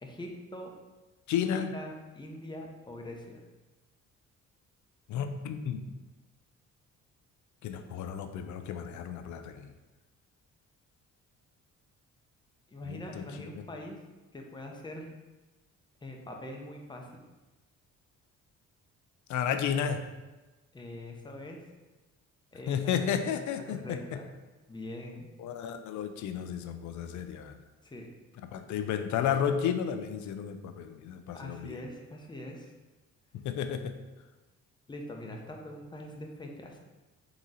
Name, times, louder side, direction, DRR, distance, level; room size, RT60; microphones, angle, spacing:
voice 1, 0.0-0.7 1.5-3.4 12.7-14.0 14.3-15.1 16.0-17.3 20.7-21.6 22.5-23.2 23.6-24.2 24.7-25.3 27.8-28.1 31.3-32.7 34.9-36.8, left 1 dB, 15° left, 1 dB, 0.7 m, -43 dB
voice 2, 1.3-1.7 5.1-5.8 7.6-9.7 12.9-13.5 19.3-20.1 22.7-24.2 25.4-27.6 28.5-31.8 33.4-34.0, left 8 dB, 75° left, 8 dB, 0.5 m, -32 dB
3.8 x 3.0 x 3.9 m, 1.1 s
cardioid pair, 90°, 30 cm